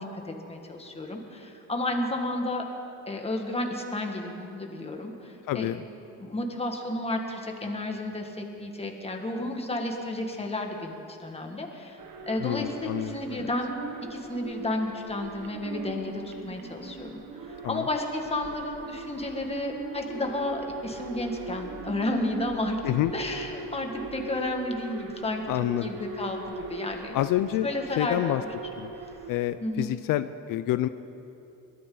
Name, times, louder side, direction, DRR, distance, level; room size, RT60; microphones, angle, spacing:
voice 1, 0.0-2.6 3.1-5.7 6.2-12.0 12.3-13.7 14.1-17.2 17.5-27.2 27.6-28.5 29.6-30.0, left 1 dB, 20° left, 2 dB, 1.8 m, -32 dB
voice 2, 5.5-5.8 12.4-13.5 17.6-17.9 22.8-23.1 25.5-25.9 27.1-27.7 28.0-28.4 28.8-28.9 29.3-30.9, left 14 dB, 80° left, 12 dB, 0.5 m, -28 dB
sound 1, 12.0-29.4, right 4 dB, 85° right, 1.6 m, -40 dB
22.0 x 14.0 x 3.9 m, 2.8 s
cardioid pair, 110°, 32 cm